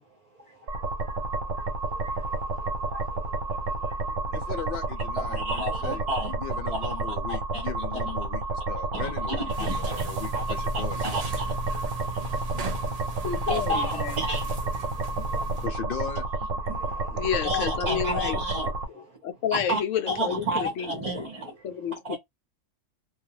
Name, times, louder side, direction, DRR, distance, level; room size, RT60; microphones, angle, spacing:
voice 1, 0.7-4.3 5.3-6.3 6.7-7.6 9.0-10.0 10.3-10.4 10.7-11.5 11.9-13.0 13.5-14.5 15.1-15.6 16.7-19.1 19.7-19.8 20.1-21.5 22.1-22.2, right 1 dB, 35° right, 0.8 m, -34 dB
sound 1, 0.7-18.8, right 2 dB, 85° right, 1.2 m, -30 dB
voice 2, 4.3-11.3 15.6-16.3, left 7 dB, 60° left, 0.6 m, -38 dB
sound 2, 9.5-15.7, right 2 dB, 55° right, 0.4 m, -36 dB
voice 3, 13.2-14.1 17.1-18.4 19.0-21.2 21.6-22.2, left 9 dB, 75° left, 0.9 m, -30 dB
2.4 x 2.3 x 2.9 m
omnidirectional pair, 1.3 m